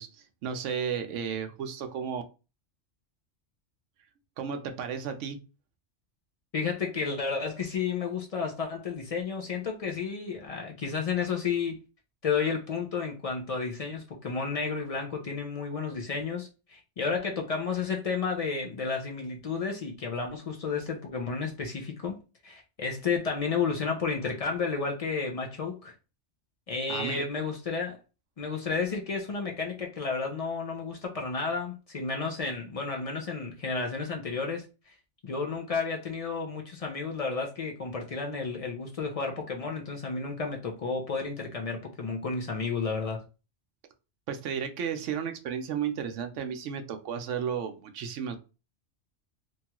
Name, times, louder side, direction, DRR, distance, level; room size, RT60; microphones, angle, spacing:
voice 1, 0.0-2.2 4.4-5.4 26.9-27.2 44.3-48.4, right 7 dB, 80° right, 0.9 m, -33 dB
voice 2, 6.5-11.8 12.2-25.9 26.7-28.0 28.4-34.9 35.2-43.2, left 5 dB, 70° left, 0.3 m, -32 dB
3.0 x 2.3 x 2.8 m
omnidirectional pair, 1.2 m